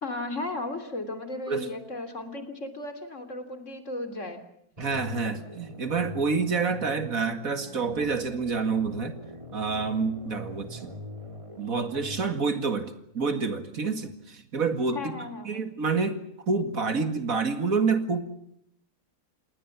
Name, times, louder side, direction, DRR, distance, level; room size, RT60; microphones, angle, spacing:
voice 1, 0.0-4.4 14.9-15.6, left 2 dB, 50° left, 8 dB, 3.5 m, -35 dB
sound 1, 4.8-12.3, left 1 dB, 20° right, 2.7 m, -43 dB
voice 2, 4.8-9.2 9.5-10.9 11.6-15.1 15.5-18.2, right 4 dB, 65° right, 9 dB, 2.6 m, -28 dB
28.5 x 19.5 x 7.2 m, 0.74 s
omnidirectional pair, 1.6 m